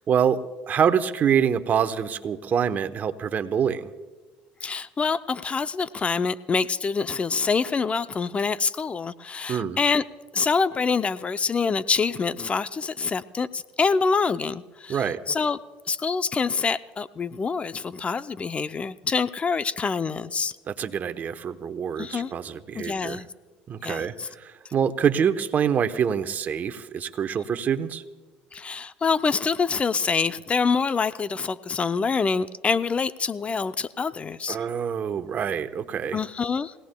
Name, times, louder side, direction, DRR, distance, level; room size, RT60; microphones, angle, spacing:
voice 1, 0.0-3.9 9.5-9.8 14.9-15.2 20.7-23.2 23.7-28.0 34.5-36.2, right 8 dB, 45° right, 9 dB, 0.9 m, -25 dB
voice 2, 4.6-10.0 10.3-15.6 15.9-20.5 22.0-22.3 22.7-23.3 23.8-24.3 28.5-34.6 36.1-36.7, left 5 dB, 30° left, 14 dB, 0.5 m, -26 dB
28.0 x 17.5 x 2.2 m, 1.4 s
supercardioid pair, 90°, 4 cm